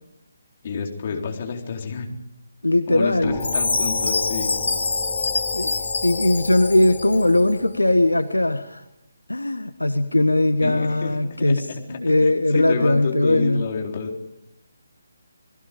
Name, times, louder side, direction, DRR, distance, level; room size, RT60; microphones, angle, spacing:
voice 1, 0.6-2.1 2.9-4.6 10.6-14.1, left 5 dB, 40° left, 2 dB, 3.9 m, -29 dB
voice 2, 2.6-3.4 5.5-8.8 9.3-13.7, left 1 dB, 80° left, 10 dB, 1.4 m, -20 dB
sound 1, 3.2-8.7, left 4 dB, 5° left, 4.3 m, -35 dB
Chime, 3.4-7.4, left 3 dB, 60° left, 1.4 m, -25 dB
30.0 x 20.5 x 5.3 m, 0.82 s
figure-of-eight pair, 145°, 0 cm